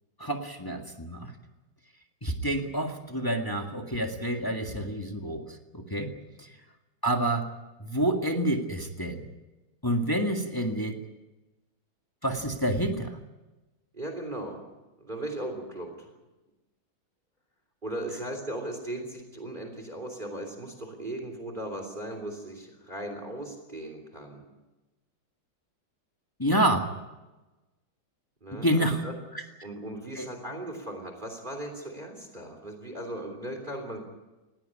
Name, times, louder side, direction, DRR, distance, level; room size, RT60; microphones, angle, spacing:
voice 1, 0.2-1.3 2.2-6.1 6.4-6.5 7.0-7.5 7.8-9.3 9.8-11.0 12.2-13.2 26.4-26.9 28.6-29.0 29.3-29.4 30.1-30.3, right 1 dB, 10° left, 3 dB, 1.7 m, -28 dB
voice 2, 13.9-14.6 15.0-16.1 17.8-24.4 28.4-29.1 29.6-34.0, right 1 dB, 25° right, 5 dB, 3.4 m, -37 dB
20.5 x 17.0 x 10.0 m, 1.1 s
omnidirectional pair, 2.1 m